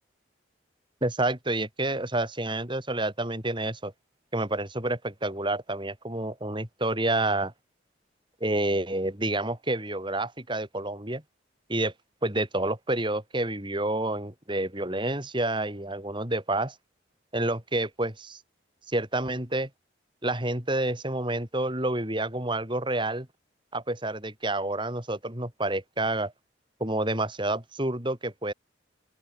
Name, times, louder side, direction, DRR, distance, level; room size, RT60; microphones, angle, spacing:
voice 1, 1.0-3.9 4.3-7.5 8.4-11.2 11.7-11.9 12.2-16.7 17.3-18.4 18.9-19.7 20.2-23.3 23.7-26.3 26.8-28.5, right 2 dB, 25° right, 4.3 m, -29 dB
open air
head